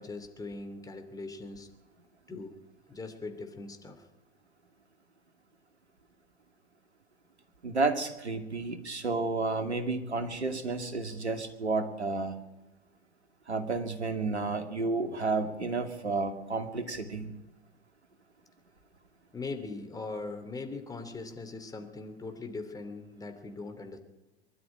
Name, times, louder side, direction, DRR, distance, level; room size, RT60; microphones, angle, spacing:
voice 1, 0.0-1.7 2.3-2.6 2.9-4.0 19.3-24.0, left 3 dB, 10° left, 6 dB, 2.9 m, -40 dB
voice 2, 7.6-12.4 13.5-17.3, right 3 dB, 80° right, 7 dB, 2.5 m, -31 dB
22.5 x 12.5 x 10.0 m, 1.0 s
figure-of-eight pair, 95°, 33 cm